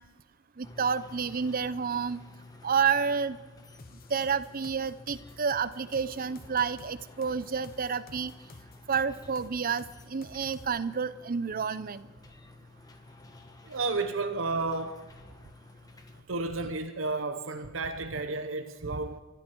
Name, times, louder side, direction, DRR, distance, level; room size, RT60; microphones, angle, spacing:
sound 1, 0.6-16.2, left 2 dB, 20° left, 1.3 m, -52 dB
voice 1, 0.6-2.2 2.6-3.4 4.1-8.3 8.9-12.1, right 6 dB, 45° right, 0.7 m, -29 dB
sound 2, 3.8-10.6, left 3 dB, 50° left, 1.1 m, -51 dB
voice 2, 13.6-15.0 16.3-19.2, right 3 dB, 75° right, 1.0 m, -32 dB
24.0 x 13.0 x 4.6 m
head